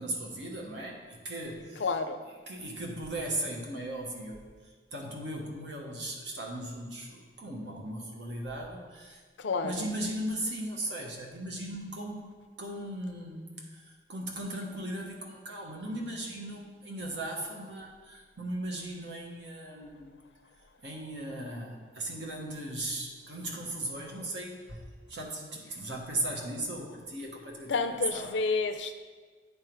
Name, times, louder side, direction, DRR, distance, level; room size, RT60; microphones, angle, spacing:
voice 1, 0.0-1.9 2.5-9.2 9.6-20.1 20.8-24.8 25.1-28.4, right 1 dB, 75° right, 0 dB, 1.3 m, -37 dB
voice 2, 1.8-2.2 9.4-9.9 27.7-29.0, left 4 dB, 85° left, 9 dB, 0.5 m, -30 dB
9.5 x 3.5 x 4.6 m, 1.5 s
head